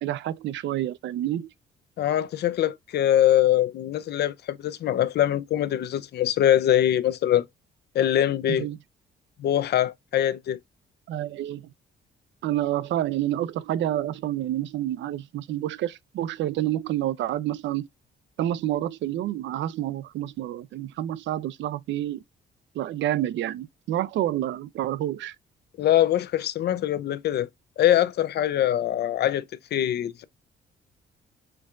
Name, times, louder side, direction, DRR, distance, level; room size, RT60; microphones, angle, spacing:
voice 1, 0.0-1.5 8.5-8.8 11.1-11.7 12.4-17.9 18.4-22.2 22.7-25.4, right 13 dB, 70° right, 0.4 m, -28 dB
voice 2, 2.0-7.4 7.9-8.7 9.4-10.6 25.8-27.5 27.8-29.4 29.7-30.2, left 11 dB, 60° left, 0.4 m, -23 dB
4.5 x 2.4 x 2.3 m
cardioid pair, 90°, 20 cm